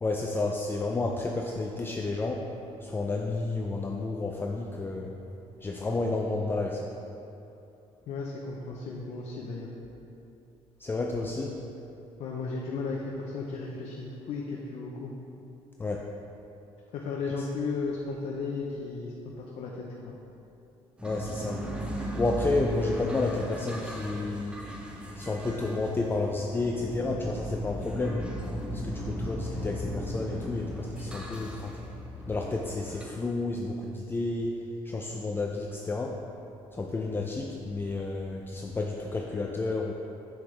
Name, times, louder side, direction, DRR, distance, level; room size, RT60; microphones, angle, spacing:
voice 1, 0.0-2.5 2.8-5.1 5.6-6.9 10.8-11.6 15.8-16.1 17.4-17.5 21.0-21.7 21.9-24.6 25.2-28.3 28.7-31.8 32.3-34.6 34.8-36.2 36.7-39.9, left 3 dB, 20° left, 0 dB, 0.5 m, -31 dB
voice 2, 8.1-9.7 12.2-15.1 16.9-20.1, left 4 dB, 65° left, -2 dB, 0.8 m, -35 dB
sound 1, 21.0-33.0, equal, 10° right, 0.9 m, -36 dB
7.2 x 6.9 x 3.3 m, 2.8 s
cardioid pair, 95°, 12 cm